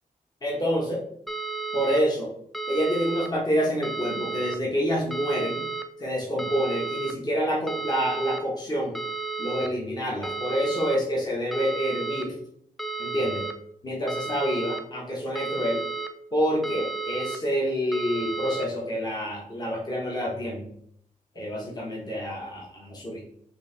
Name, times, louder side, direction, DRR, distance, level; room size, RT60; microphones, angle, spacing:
voice 1, 0.4-1.0 1.7-2.3 2.7-5.6 6.0-9.0 9.4-12.3 13.0-13.4 13.8-15.8 16.3-20.6 21.3-23.2, equal, 25° left, -3 dB, 1.2 m, -27 dB
sound 1, 1.3-2.0 2.5-3.3 3.8-4.6 5.1-5.8 6.4-7.1 7.7-8.4 8.9-9.7 10.2-11.0 11.5-12.2 12.8-13.5 14.1-14.8 15.3-16.1 16.6-17.4 17.9-18.6, right 4 dB, ahead, 0.5 m, -32 dB
5.2 x 2.8 x 3.4 m, 0.68 s
cardioid pair, 90°, 15 cm